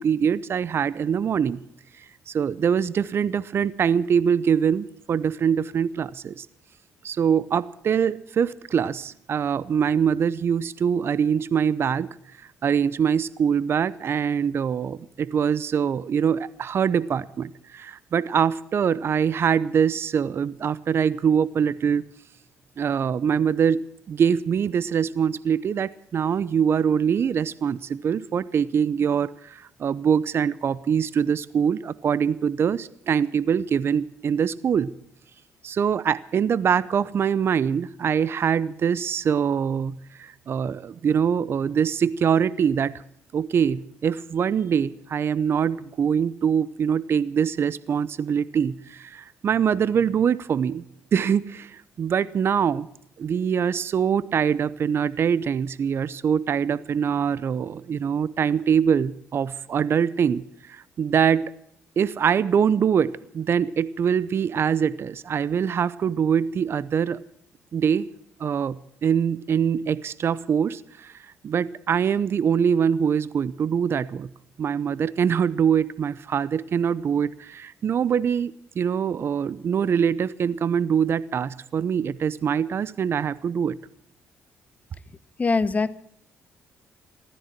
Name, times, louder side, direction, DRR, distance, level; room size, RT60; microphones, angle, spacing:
voice 1, 0.0-1.6 2.0-6.5 7.0-12.2 12.6-22.0 22.8-34.9 35.6-43.0 43.3-50.8 51.1-52.9 53.2-61.5 62.0-67.2 67.7-68.1 68.4-71.1 71.4-74.3 74.6-83.8, right 7 dB, 55° right, 19 dB, 0.7 m, -23 dB
voice 2, 85.4-85.9, left 4 dB, 30° left, 16 dB, 1.1 m, -22 dB
16.0 x 13.5 x 5.9 m, 0.69 s
supercardioid pair, 60°, 5 cm